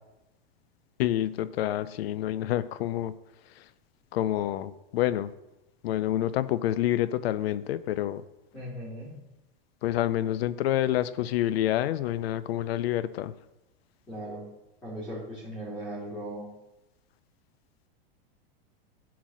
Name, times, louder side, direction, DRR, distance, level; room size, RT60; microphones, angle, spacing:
voice 1, 1.0-3.1 4.1-5.3 5.8-8.2 9.8-13.3, left 13 dB, 90° left, 14 dB, 0.5 m, -28 dB
voice 2, 8.5-9.2 14.1-14.4 14.8-16.5, right 1 dB, 5° left, -10 dB, 2.8 m, -38 dB
10.0 x 4.1 x 6.1 m, 0.98 s
supercardioid pair, 155°, 29 cm